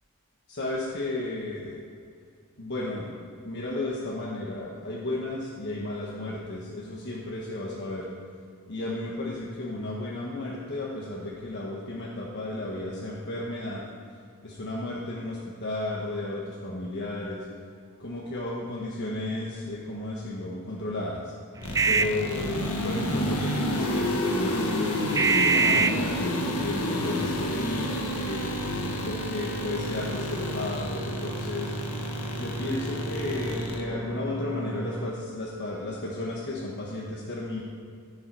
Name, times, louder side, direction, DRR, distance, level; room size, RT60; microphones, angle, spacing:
voice 1, 0.5-1.8 2.6-8.0 8.7-13.8 14.4-17.5 18.0-21.3 21.9-24.9 25.2-28.5 29.0-31.7 32.3-37.6, left 2 dB, 50° left, -4 dB, 1.3 m, -33 dB
sound 1, 21.6-33.8, left 1 dB, 80° left, 1.4 m, -30 dB
sound 2, 21.6-35.1, right 3 dB, 15° right, 0.3 m, -31 dB
14.5 x 7.1 x 4.7 m, 2.3 s
head